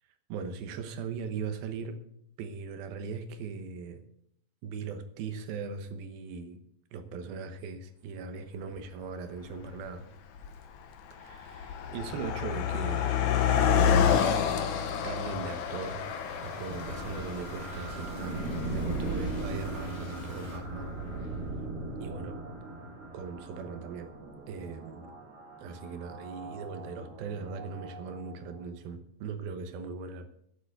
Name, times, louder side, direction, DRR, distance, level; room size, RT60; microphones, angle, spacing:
voice 1, 0.3-2.0 2.4-4.0 4.6-6.6 6.9-10.1 11.2-13.3 15.0-16.0 16.4-21.5 22.0-22.4 23.1-24.1 24.5-25.2 25.6-30.3, right 5 dB, 80° right, 8 dB, 2.9 m, -39 dB
Car passing by, 8.8-8.9 9.7-9.9 10.2-20.6, left 8 dB, 65° left, 2.0 m, -29 dB
sound 1, 15.2-20.6, equal, 10° left, 2.2 m, -48 dB
ab airlock atmos, 16.7-28.6, right 2 dB, 50° right, 3.7 m, -39 dB
9.4 x 8.3 x 7.8 m, 0.73 s
omnidirectional pair, 4.3 m